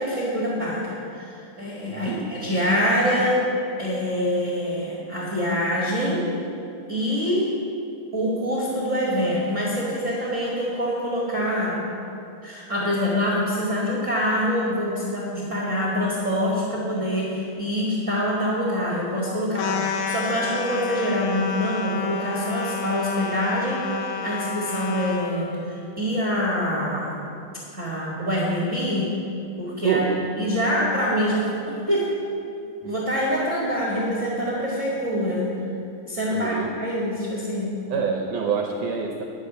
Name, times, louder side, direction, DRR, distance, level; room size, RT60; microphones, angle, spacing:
voice 1, 0.0-3.4 3.8-6.3 6.9-7.5 8.1-11.8 12.4-27.2 27.7-29.1 29.6-30.0 30.4-32.1 32.8-35.5 36.0-37.8, equal, 40° right, -5 dB, 1.1 m, -25 dB
voice 2, 1.9-2.3 29.8-30.2 30.7-30.8 32.8-32.9 36.3-36.7 37.9-39.2, right 6 dB, 80° right, 1 dB, 1.9 m, -26 dB
sound 1, 19.5-25.3, left 5 dB, 80° left, 1.8 m, -30 dB
11.5 x 6.4 x 8.1 m, 2.6 s
omnidirectional pair, 4.4 m